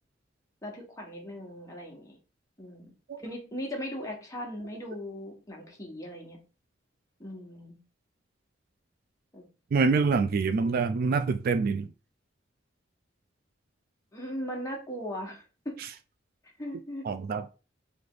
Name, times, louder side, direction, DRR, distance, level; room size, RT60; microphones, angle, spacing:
voice 1, 0.6-2.2 2.6-2.9 3.2-6.4 7.2-7.8 9.3-9.4 14.1-15.7 16.6-17.0, equal, 15° left, 1.4 m, -38 dB
voice 2, 9.7-11.9 17.0-17.5, right 4 dB, 50° right, 0.3 m, -25 dB
3.5 x 3.3 x 3.9 m
head